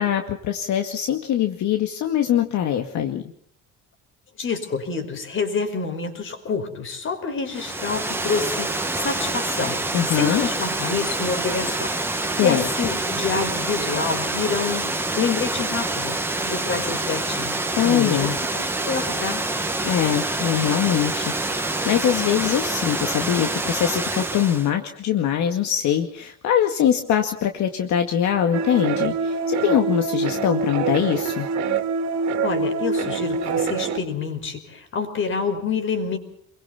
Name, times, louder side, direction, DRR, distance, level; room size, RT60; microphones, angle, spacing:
voice 1, 0.0-3.2 9.9-10.4 12.3-12.7 17.8-18.4 19.8-31.5, left 10 dB, 70° left, 5 dB, 2.1 m, -22 dB
voice 2, 4.4-11.9 12.4-19.4 32.4-36.2, left 5 dB, 40° left, 7 dB, 5.2 m, -27 dB
Water, 7.5-24.7, right 2 dB, 10° right, 1.9 m, -26 dB
sound 1, 28.5-34.0, right 4 dB, 65° right, 2.7 m, -25 dB
28.5 x 23.0 x 4.3 m, 0.65 s
cardioid pair, 155°, 30 cm